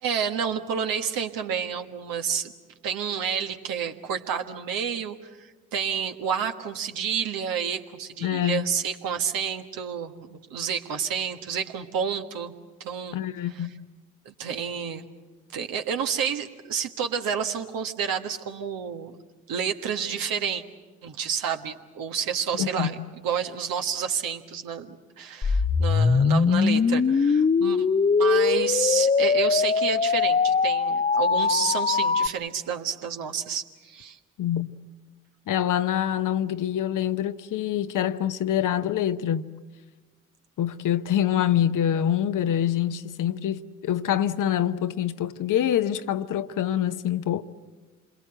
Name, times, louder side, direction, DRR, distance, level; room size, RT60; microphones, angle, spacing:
voice 1, 0.0-2.5 2.8-12.5 12.8-13.2 13.4-13.7 14.2-15.0 15.5-19.2 19.5-20.6 21.0-27.9 28.2-34.2, right 7 dB, 65° right, 1.5 m, -30 dB
voice 2, 8.2-8.6 13.1-13.9 22.6-22.9 34.4-34.7 35.5-39.5 40.6-47.4, left 10 dB, 55° left, 0.9 m, -25 dB
sound 1, 25.4-32.3, left 5 dB, 20° left, 0.7 m, -21 dB
27.5 x 22.0 x 7.9 m
hypercardioid pair, 40°, 37 cm